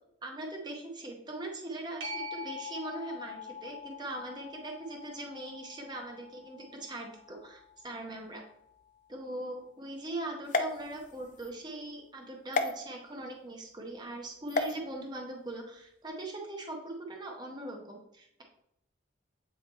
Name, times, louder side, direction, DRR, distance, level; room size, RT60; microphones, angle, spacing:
voice 1, 0.2-8.4 9.1-18.4, right 1 dB, 20° right, 1 dB, 0.8 m, -41 dB
sound 1, 2.0-9.2 14.7-14.8, left 3 dB, 70° right, 1.1 m, -45 dB
sound 2, 10.5-11.5 12.5-12.7 14.5-14.7, left 3 dB, 40° left, 0.5 m, -31 dB
8.3 x 2.9 x 4.2 m, 0.78 s
head